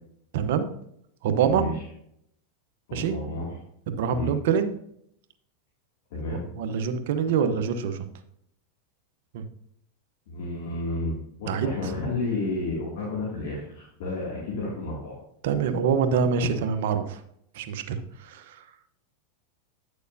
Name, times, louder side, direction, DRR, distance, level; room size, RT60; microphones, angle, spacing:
voice 1, 0.3-0.7 1.2-1.6 2.9-3.2 3.9-4.7 6.6-8.1 9.3-9.4 11.5-11.9 15.4-17.2 17.5-18.6, right 6 dB, 70° right, 8 dB, 0.9 m, -25 dB
voice 2, 1.5-1.8 2.9-3.6 4.1-4.3 6.1-6.5 10.3-11.1 11.4-15.2, left 2 dB, 70° left, -4 dB, 2.3 m, -31 dB
9.4 x 6.6 x 2.7 m, 0.72 s
hypercardioid pair, 110°, 0 cm